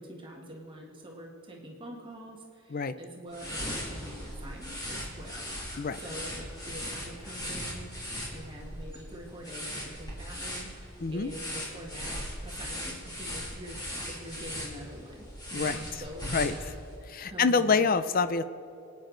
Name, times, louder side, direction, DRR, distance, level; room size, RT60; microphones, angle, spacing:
voice 1, 0.0-7.9 8.3-13.8 14.1-16.8 17.3-17.9, equal, 25° right, -1 dB, 1.7 m, -45 dB
sound 1, 3.3-17.0, equal, 20° left, 3.2 m, -39 dB
voice 2, 11.0-11.3 15.5-16.6 17.1-18.4, left 4 dB, 45° left, 12 dB, 0.5 m, -27 dB
27.0 x 9.6 x 3.9 m, 2.7 s
head